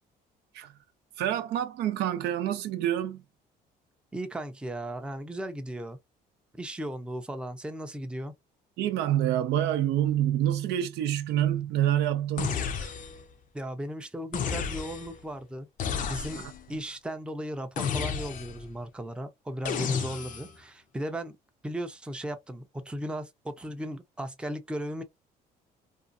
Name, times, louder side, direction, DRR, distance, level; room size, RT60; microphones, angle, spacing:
voice 1, 1.2-3.2 8.8-12.9 16.3-16.4, right 11 dB, 80° right, 0.6 m, -27 dB
voice 2, 4.1-6.0 6.6-8.3 13.5-15.7 16.1-21.4 21.6-25.0, right 1 dB, 5° right, 0.5 m, -36 dB
sound 1, 12.4-13.3 14.3-15.2 15.8-16.7 17.8-18.7 19.6-20.6, left 7 dB, 50° left, 0.6 m, -32 dB
2.5 x 2.4 x 2.5 m
cardioid pair, 110°, 17 cm